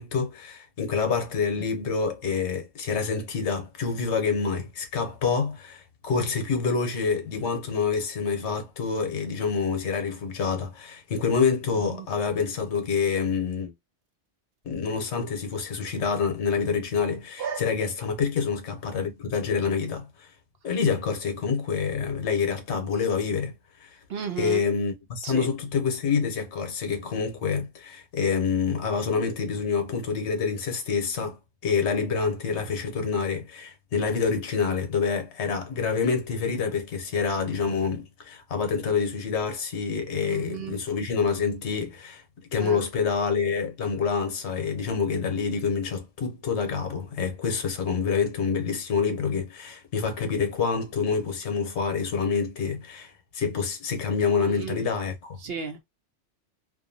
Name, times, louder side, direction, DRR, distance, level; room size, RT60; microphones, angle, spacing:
voice 1, 0.0-13.7 14.6-20.3 20.6-23.5 23.8-24.0 24.4-42.2 42.5-55.4, left 5 dB, 70° left, 1.0 m, -27 dB
voice 2, 24.1-24.6 25.2-25.5 40.2-40.8 42.6-42.8 54.4-54.8 55.4-55.8, right 6 dB, 65° right, 0.8 m, -33 dB
2.6 x 2.4 x 2.6 m
omnidirectional pair, 1.2 m